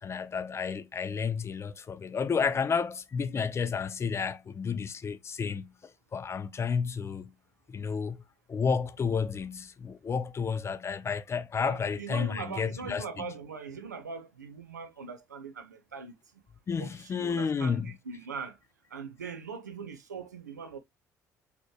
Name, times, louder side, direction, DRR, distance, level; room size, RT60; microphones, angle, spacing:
voice 1, 0.0-7.3 7.7-8.2 8.5-13.3 16.7-17.9, left 6 dB, 30° left, 0.5 m, -31 dB
voice 2, 11.6-16.1 16.8-18.6 18.9-20.8, right 5 dB, 85° right, 0.5 m, -41 dB
4.0 x 3.0 x 3.1 m
figure-of-eight pair, 50°, 9 cm